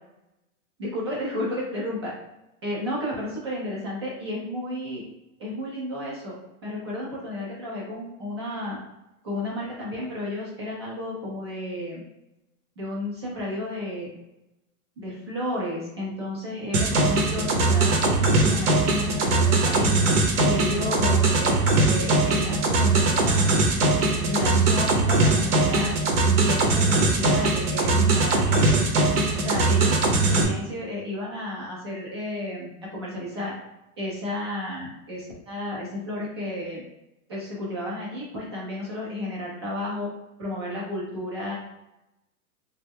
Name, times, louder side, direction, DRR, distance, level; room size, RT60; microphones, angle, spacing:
voice 1, 0.8-2.1 2.6-5.0 5.4-6.3 6.6-8.8 9.2-12.0 12.8-14.1 15.0-23.4 24.0-26.0 26.3-28.9 29.3-33.6 34.0-36.8 37.3-40.1 40.4-41.6, left 1 dB, 20° right, -5 dB, 0.4 m, -32 dB
sound 1, 16.7-30.4, right 2 dB, 55° right, 0.7 m, -21 dB
3.2 x 2.1 x 3.4 m, 0.92 s
supercardioid pair, 170°, 43 cm